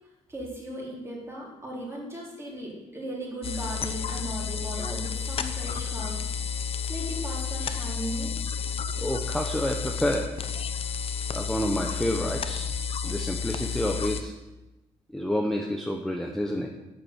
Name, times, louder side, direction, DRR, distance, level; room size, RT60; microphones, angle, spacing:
voice 1, 0.3-6.3 6.9-8.3, right 1 dB, 20° right, -4 dB, 4.0 m, -37 dB
sound 1, 3.4-14.2, left 6 dB, 45° left, 0.7 m, -31 dB
voice 2, 9.0-10.3 11.3-12.7 13.0-14.3 15.1-16.7, equal, 5° left, 2 dB, 0.9 m, -29 dB
10.0 x 7.2 x 9.4 m, 1.0 s
wide cardioid pair, 165°, 13 cm